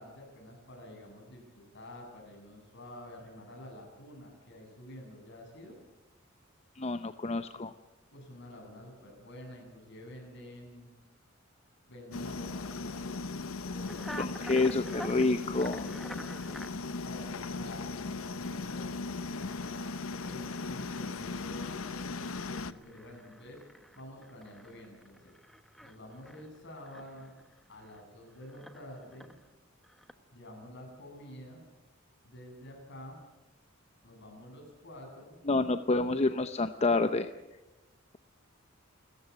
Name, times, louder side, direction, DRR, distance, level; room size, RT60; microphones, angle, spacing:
voice 1, 0.0-5.8 8.1-10.9 11.9-15.2 15.7-16.5 17.0-23.6 24.0-25.3 25.8-27.4 27.7-29.3 30.3-31.6 32.2-33.2 34.0-35.4, left 1 dB, 60° left, 2 dB, 7.7 m, -49 dB
voice 2, 6.8-7.7 14.2-15.9 35.5-37.3, left 3 dB, 30° left, 10 dB, 0.7 m, -28 dB
sound 1, 12.1-22.7, left 3 dB, 80° left, 0.9 m, -38 dB
sound 2, 13.9-16.7 18.0-18.7 19.1-19.2 19.4-28.1 28.3-29.5 29.8-30.1, equal, ahead, 1.1 m, -49 dB
29.0 x 14.5 x 8.2 m, 1.1 s
head